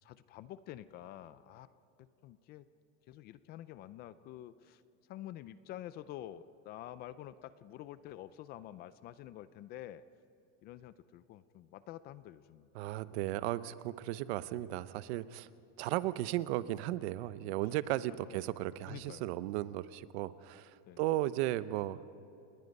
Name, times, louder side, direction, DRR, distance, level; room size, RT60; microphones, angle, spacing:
voice 1, 0.0-1.7 2.0-2.7 3.1-4.8 5.1-10.0 10.6-12.9 13.3-13.4 17.6-17.7 18.3-18.4 18.9-19.3 20.9-21.0, left 12 dB, 30° left, 15 dB, 0.4 m, -48 dB
voice 2, 12.7-15.5 15.8-20.7 21.0-22.0, right 15 dB, 70° right, 15 dB, 0.8 m, -35 dB
29.5 x 20.0 x 5.4 m, 2.9 s
cardioid pair, 170°, 33 cm